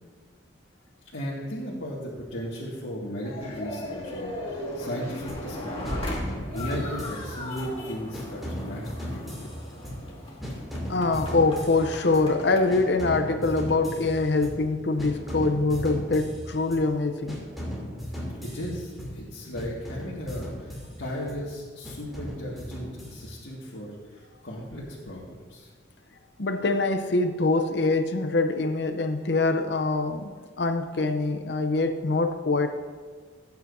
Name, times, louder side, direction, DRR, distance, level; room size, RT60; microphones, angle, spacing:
voice 1, 1.1-6.0 6.5-9.2 18.1-25.7, equal, 85° left, -8 dB, 2.0 m, -36 dB
sound 1, 3.2-14.5, left 1 dB, 30° left, 2.1 m, -38 dB
sound 2, 5.3-5.6 5.8-7.8 8.1-10.2 10.4-12.4 12.7-14.7 15.0-16.9 17.3-19.3 19.6-21.5 21.8-23.5, equal, ahead, 2.7 m, -37 dB
voice 2, 10.9-17.4 26.4-32.7, left 3 dB, 60° left, 7 dB, 0.7 m, -24 dB
17.5 x 9.2 x 2.7 m, 1.5 s
head